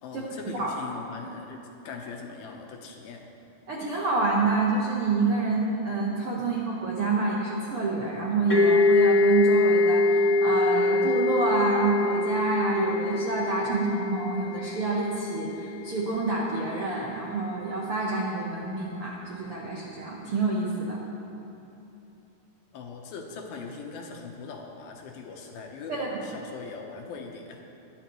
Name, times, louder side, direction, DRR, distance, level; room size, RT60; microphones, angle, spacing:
voice 1, 0.0-3.3 6.3-6.7 22.7-27.6, left 4 dB, 70° left, 1 dB, 2.7 m, -41 dB
voice 2, 3.7-21.0 25.9-26.3, right 3 dB, 90° right, -4 dB, 1.2 m, -27 dB
sound 1, 8.5-16.0, left 2 dB, 35° left, 0.9 m, -24 dB
22.0 x 11.0 x 3.1 m, 3.0 s
omnidirectional pair, 4.7 m